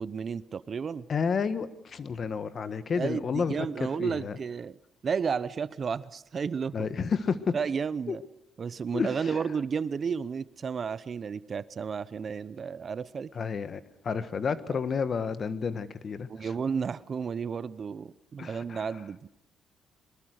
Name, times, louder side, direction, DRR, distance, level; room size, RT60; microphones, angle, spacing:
voice 1, 0.0-1.1 2.9-4.8 5.0-6.9 7.5-8.2 8.6-13.3 16.3-19.3, right 6 dB, 45° right, 17 dB, 0.8 m, -32 dB
voice 2, 1.1-4.4 6.7-7.5 8.1-8.2 8.9-9.3 13.3-16.5 18.4-18.8, left 5 dB, 50° left, 14 dB, 1.4 m, -31 dB
23.0 x 20.5 x 6.6 m, 0.81 s
cardioid pair, 90°, 0 cm